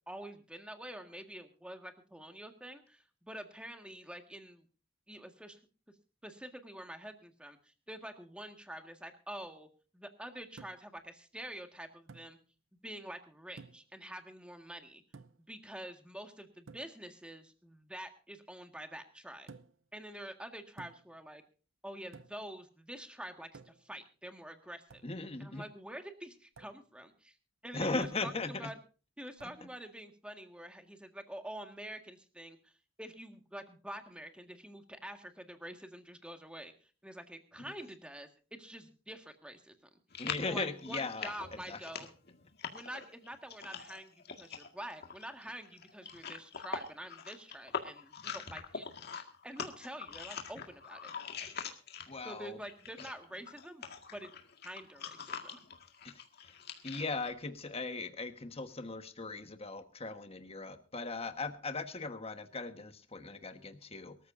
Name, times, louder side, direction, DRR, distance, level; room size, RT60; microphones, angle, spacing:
voice 1, 0.1-4.6 5.1-5.6 6.2-9.7 9.9-12.4 12.8-15.0 15.5-19.5 19.9-21.4 21.8-25.0 25.4-27.4 27.6-28.8 29.2-32.7 33.0-36.7 37.0-40.0 40.4-42.1 42.7-48.9 49.4-51.1 52.2-54.3 54.6-55.6, right 1 dB, 5° right, 6 dB, 1.8 m, -47 dB
sound 1, 10.6-11.0 12.1-12.3 13.6-14.0 15.1-15.5 16.7-17.0 19.5-19.9 20.8-21.2 22.1-22.5 23.5-24.0 24.9-25.1 26.6-26.8 28.0-28.3 29.4-29.7, right 4 dB, 90° right, 0.7 m, -54 dB
voice 2, 25.0-25.6 27.7-28.7 29.4-29.5 40.2-41.8 52.1-52.6 53.0-53.1 56.0-56.5 56.8-64.2, left 3 dB, 30° left, 8 dB, 1.4 m, -39 dB
sound 2, 40.1-52.3 52.6-57.3, left 6 dB, 55° left, 1.9 m, -44 dB
23.5 x 14.0 x 2.7 m, 0.36 s
head